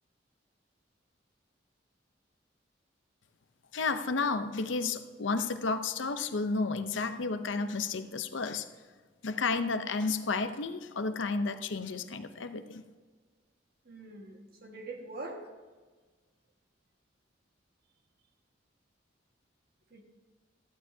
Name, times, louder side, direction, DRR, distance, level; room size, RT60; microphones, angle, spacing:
voice 1, 3.7-8.7 9.2-12.8, left 4 dB, 80° left, 9 dB, 0.7 m, -32 dB
voice 2, 13.8-15.5 19.9-20.0, right 2 dB, 55° right, 2 dB, 1.7 m, -43 dB
14.0 x 13.0 x 2.7 m, 1.4 s
head